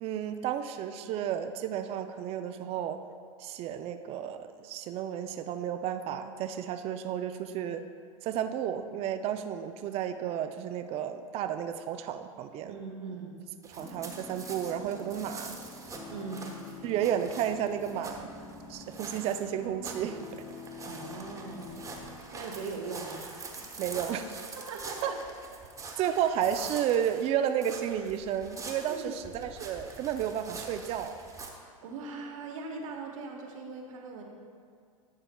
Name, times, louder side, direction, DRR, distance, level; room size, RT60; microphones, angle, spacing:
voice 1, 0.0-3.0 3.4-7.8 8.2-12.8 13.7-15.6 16.8-18.3 18.7-20.2 23.8-24.4 25.0-25.1 26.0-31.2, right 9 dB, 35° right, 8 dB, 0.4 m, -32 dB
voice 2, 12.7-13.3 16.1-16.5 20.8-21.9 22.3-23.2 23.4-23.7 24.5-25.2 28.9-29.2 31.8-34.2, right 4 dB, 70° right, 1 dB, 1.3 m, -40 dB
sound 1, 13.6-31.5, right 3 dB, 20° right, 1.1 m, -45 dB
sound 2, 13.8-22.2, left 4 dB, 15° left, 0.8 m, -47 dB
11.5 x 7.5 x 2.2 m, 2.2 s
hypercardioid pair, 100°, 18 cm